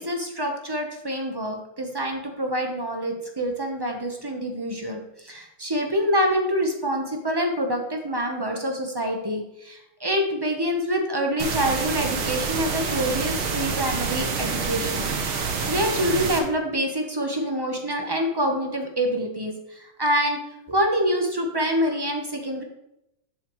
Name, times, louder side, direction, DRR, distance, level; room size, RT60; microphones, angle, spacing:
voice 1, 0.0-20.4 20.7-22.6, equal, 20° right, 3 dB, 0.6 m, -26 dB
sound 1, 11.4-16.4, right 5 dB, 80° right, 2.0 m, -27 dB
11.5 x 7.4 x 3.2 m, 0.86 s
omnidirectional pair, 2.3 m